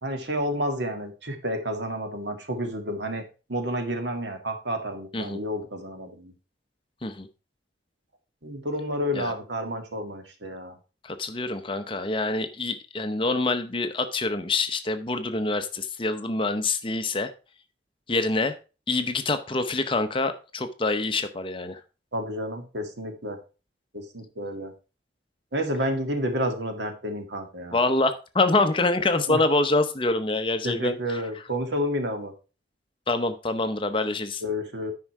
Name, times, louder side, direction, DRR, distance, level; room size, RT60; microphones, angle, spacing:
voice 1, 0.0-6.3 8.4-10.7 22.1-23.4 23.9-24.7 25.5-27.8 29.3-29.4 30.6-32.3 34.4-34.9, equal, 75° right, 6 dB, 1.8 m, -30 dB
voice 2, 11.0-17.3 18.1-18.5 18.9-21.8 27.7-31.2 33.1-34.4, left 2 dB, 30° left, 9 dB, 0.8 m, -26 dB
9.5 x 5.4 x 4.7 m, 0.32 s
head